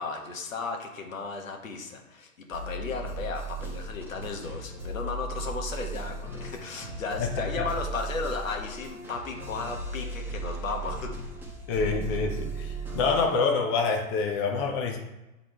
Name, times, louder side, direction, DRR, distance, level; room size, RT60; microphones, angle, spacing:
voice 1, 0.0-11.2, left 4 dB, 65° left, 2 dB, 1.6 m, -35 dB
sound 1, 2.5-13.3, right 3 dB, 5° right, 1.4 m, -36 dB
voice 2, 7.2-7.7 11.7-15.0, left 4 dB, 20° left, 2 dB, 0.5 m, -27 dB
8.8 x 3.9 x 3.4 m, 1.0 s
figure-of-eight pair, 120°, 42 cm